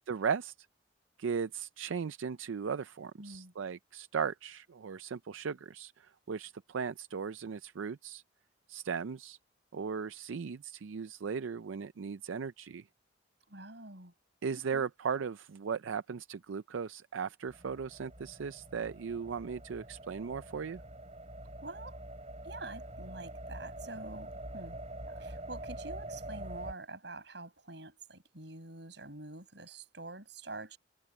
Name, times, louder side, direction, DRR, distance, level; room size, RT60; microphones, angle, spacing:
voice 1, 0.1-0.5 1.2-8.2 8.7-9.4 9.7-12.9 14.4-20.8, right 6 dB, 90° right, 0.5 m, -37 dB
voice 2, 3.2-3.5 13.5-14.1 14.7-14.9 21.6-22.0 22.4-24.8 25.1-30.8, right 2 dB, 65° right, 7.2 m, -46 dB
sound 1, 17.5-26.7, right 1 dB, 35° right, 6.8 m, -45 dB
head